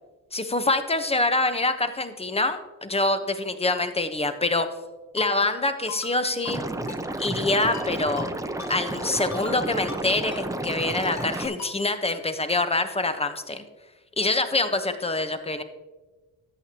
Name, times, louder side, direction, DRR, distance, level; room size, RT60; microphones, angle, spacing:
voice 1, 0.3-4.7 5.1-6.6 7.2-8.3 8.7-13.6 14.2-15.6, left 2 dB, 15° left, 9 dB, 1.0 m, -25 dB
Ringtone, 5.2-5.3 5.9-6.2 6.4-6.6 6.9-7.0 7.6-7.9 8.2-8.3 8.6-8.7 9.3-9.6 9.9-10.0 10.3-10.4 11.0-11.3 11.6-11.7, left 6 dB, 50° left, 1.3 m, -39 dB
Liquid, 6.5-11.5, right 1 dB, 10° right, 0.7 m, -31 dB
13.0 x 8.5 x 2.9 m, 1.2 s
cardioid pair, 65°, 36 cm